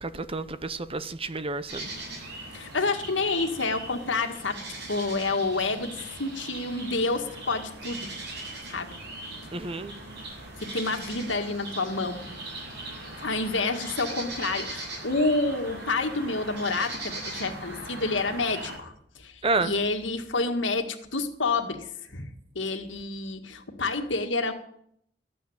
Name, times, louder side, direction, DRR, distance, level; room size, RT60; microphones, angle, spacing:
voice 1, 0.0-1.9 9.5-10.2 19.4-19.9, right 3 dB, 30° right, 0.8 m, -30 dB
sound 1, 1.7-18.8, right 2 dB, 65° right, 7.8 m, -39 dB
voice 2, 2.5-4.6 4.9-8.1 8.7-8.9 10.7-12.2 13.2-19.3 19.6-22.3 22.6-24.5, left 3 dB, 85° left, 1.9 m, -28 dB
13.5 x 9.5 x 8.7 m
head